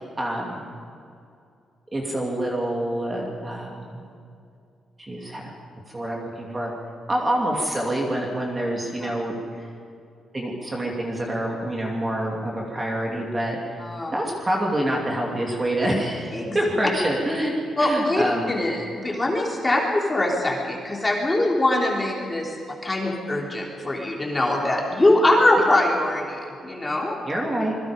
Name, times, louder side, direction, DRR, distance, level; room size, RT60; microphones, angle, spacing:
voice 1, 0.2-0.7 1.9-4.0 5.0-5.4 5.9-6.7 7.1-9.3 10.3-13.8 14.1-18.5 27.2-27.8, right 1 dB, 15° right, -1 dB, 2.8 m, -26 dB
voice 2, 13.8-14.1 16.3-16.6 17.8-22.5 22.8-27.1, left 1 dB, 15° left, -2 dB, 3.4 m, -22 dB
27.0 x 22.5 x 5.2 m, 2.5 s
wide cardioid pair, 170°, 0 cm